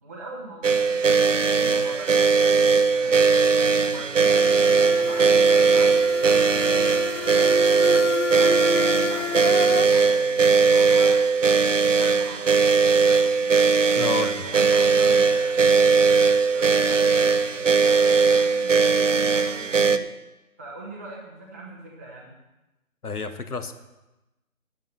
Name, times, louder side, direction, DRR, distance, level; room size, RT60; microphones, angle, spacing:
voice 1, 0.0-4.3 4.9-8.1 8.3-9.5 9.8-11.2 11.9-13.5 14.2-15.6 16.0-20.1 20.6-22.4, right 2 dB, 10° right, -6 dB, 0.9 m, -42 dB
sound 1, 0.6-20.0, right 5 dB, 55° right, 0.8 m, -19 dB
sound 2, 4.2-9.9, left 6 dB, 55° left, 0.8 m, -31 dB
voice 2, 13.9-14.3 23.0-23.7, left 5 dB, 85° left, 9 dB, 1.5 m, -30 dB
10.5 x 9.9 x 6.6 m, 1.0 s
figure-of-eight pair, 165°, 44 cm